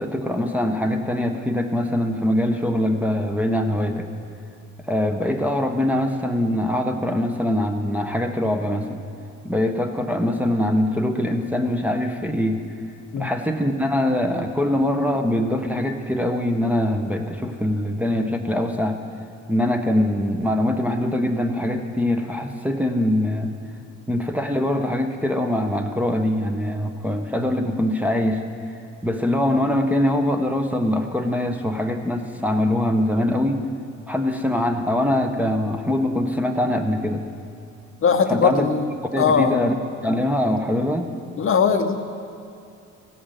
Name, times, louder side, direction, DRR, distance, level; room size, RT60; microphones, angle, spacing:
voice 1, 0.0-4.1 4.9-9.0 9.4-12.6 13.2-19.0 19.5-23.5 24.1-28.4 29.0-33.6 34.1-37.3 38.3-38.7 39.1-39.8 40.0-41.1, left 1 dB, 5° right, 2 dB, 0.8 m, -23 dB
voice 2, 38.0-39.7 41.4-42.0, left 6 dB, 45° left, 7 dB, 0.7 m, -20 dB
15.0 x 5.5 x 6.7 m, 2.6 s
cardioid pair, 90°, 30 cm